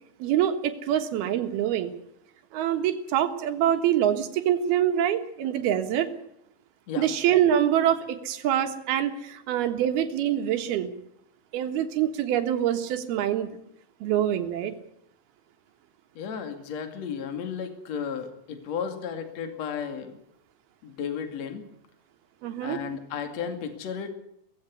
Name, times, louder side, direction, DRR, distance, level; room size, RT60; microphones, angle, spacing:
voice 1, 0.2-1.9 2.5-6.1 7.0-10.9 11.5-13.5 14.0-14.7 22.4-22.8, right 10 dB, 80° right, 7 dB, 3.5 m, -25 dB
voice 2, 16.1-20.2 20.8-21.6 22.6-24.1, left 7 dB, 50° left, 7 dB, 3.1 m, -34 dB
17.5 x 15.5 x 9.6 m, 0.76 s
omnidirectional pair, 4.4 m